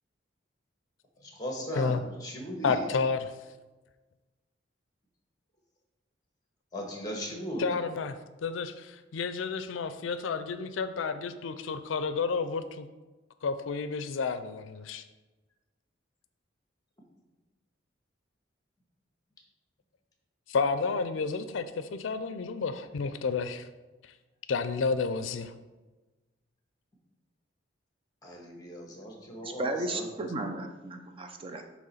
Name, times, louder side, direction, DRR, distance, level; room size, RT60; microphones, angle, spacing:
voice 1, 1.2-2.8 6.7-7.6 28.2-30.1, equal, 20° left, 0 dB, 1.4 m, -38 dB
voice 2, 2.6-3.3 7.6-8.2 8.4-12.9 13.4-15.0 20.5-23.7 24.5-25.5, left 4 dB, 80° left, 11 dB, 0.4 m, -31 dB
voice 3, 29.4-31.6, right 2 dB, 30° right, 5 dB, 0.5 m, -34 dB
7.6 x 3.0 x 5.6 m, 1.2 s
head